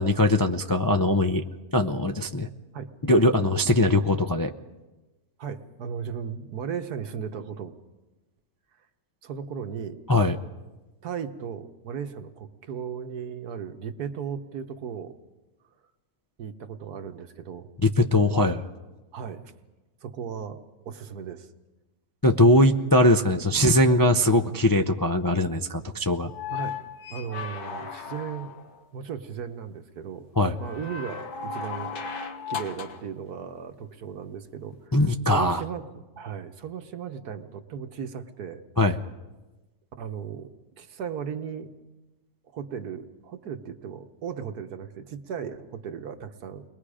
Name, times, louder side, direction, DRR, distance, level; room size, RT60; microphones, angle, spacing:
voice 1, 0.0-1.4 1.7-2.5 3.1-4.5 10.1-10.4 17.8-18.7 22.2-26.3 30.4-30.6 34.9-35.6 38.8-39.0, left 1 dB, 30° left, 4 dB, 0.3 m, -21 dB
voice 2, 5.4-7.8 9.2-10.0 11.0-15.1 16.4-17.7 19.1-19.5 20.0-21.5 23.0-23.1 26.5-26.7 27.1-28.6 28.9-30.3 30.6-31.9 32.5-38.6 40.0-40.5 40.8-41.7 42.5-46.6, right 7 dB, 90° right, 8 dB, 1.7 m, -36 dB
sound 1, 26.2-28.8 30.6-33.1 34.7-34.8, left 6 dB, 90° left, 2.0 m, -36 dB
30.0 x 21.5 x 5.0 m, 1.1 s
omnidirectional pair, 1.6 m